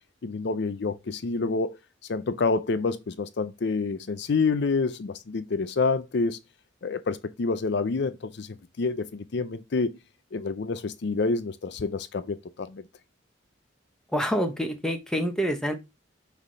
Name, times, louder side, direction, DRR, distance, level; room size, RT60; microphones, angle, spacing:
voice 1, 0.2-1.8 2.1-6.4 6.8-8.5 8.8-10.0 10.3-12.8, left 4 dB, 60° left, 0.5 m, -28 dB
voice 2, 14.1-15.7, equal, 5° left, 1.0 m, -27 dB
6.1 x 3.5 x 5.4 m
head